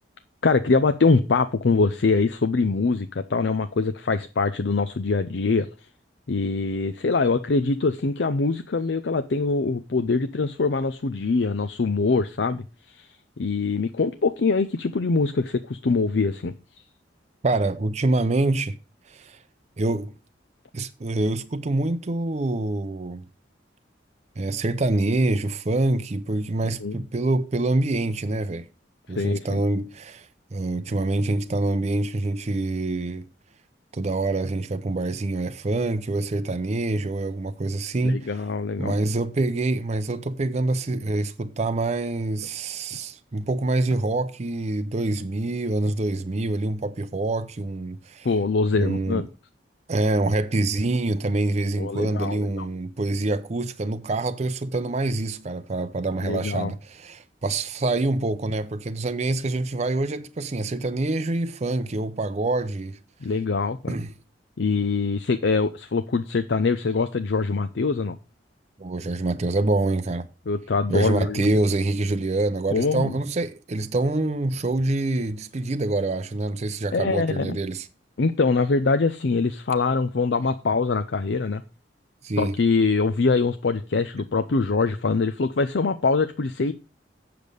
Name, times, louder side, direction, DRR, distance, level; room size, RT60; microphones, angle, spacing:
voice 1, 0.4-5.7 6.3-16.5 26.8-27.0 29.1-29.6 38.0-39.0 48.2-49.3 51.8-52.7 56.2-56.7 63.2-63.9 64.6-68.2 70.5-71.5 72.7-73.1 76.9-77.6 78.2-81.6 82.4-86.7, left 4 dB, 70° left, 0.6 m, -23 dB
voice 2, 17.4-18.8 19.1-19.4 19.8-20.1 20.7-23.3 24.4-28.7 29.1-33.3 33.9-38.3 38.8-48.3 48.7-49.3 49.9-63.0 63.9-64.1 68.8-70.3 70.9-77.9 82.2-82.6, right 2 dB, 40° right, 0.5 m, -26 dB
8.2 x 6.8 x 5.2 m
head